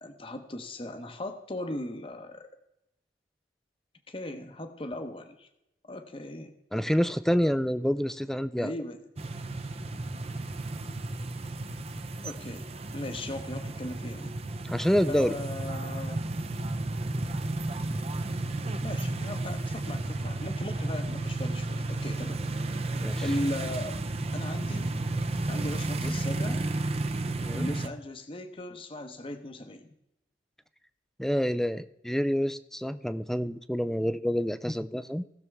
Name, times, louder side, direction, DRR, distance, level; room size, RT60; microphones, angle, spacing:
voice 1, 0.0-2.5 4.1-5.5 5.8-6.5 8.6-9.0 12.2-14.4 15.1-16.2 18.8-22.4 22.7-22.8 23.2-24.0 24.3-25.1 25.5-26.6 27.5-29.9, left 1 dB, 30° left, 7 dB, 0.9 m, -38 dB
voice 2, 6.7-8.7 14.7-15.4 23.0-23.3 26.0-26.1 27.4-27.7 31.2-35.2, equal, ahead, 13 dB, 0.4 m, -27 dB
sound 1, 9.2-27.9, right 2 dB, 35° right, 0.6 m, -32 dB
18.0 x 6.8 x 3.5 m, 0.86 s
head